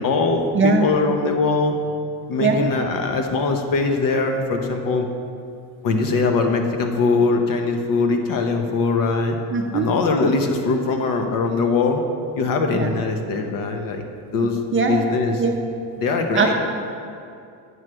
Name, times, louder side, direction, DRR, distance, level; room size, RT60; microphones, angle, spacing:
voice 1, 0.0-1.7 2.3-5.1 5.8-9.4 9.7-12.0 12.4-14.0 14.3-14.6 14.9-15.4 16.0-16.5, left 3 dB, 50° left, 4 dB, 0.9 m, -21 dB
voice 2, 0.5-0.9 2.4-2.7 9.5-9.9 12.7-12.9 14.7-15.0 15.4-15.5 16.3-16.5, right 4 dB, 30° right, 2 dB, 0.6 m, -19 dB
9.3 x 3.2 x 6.1 m, 2.5 s
supercardioid pair, 105°, 44 cm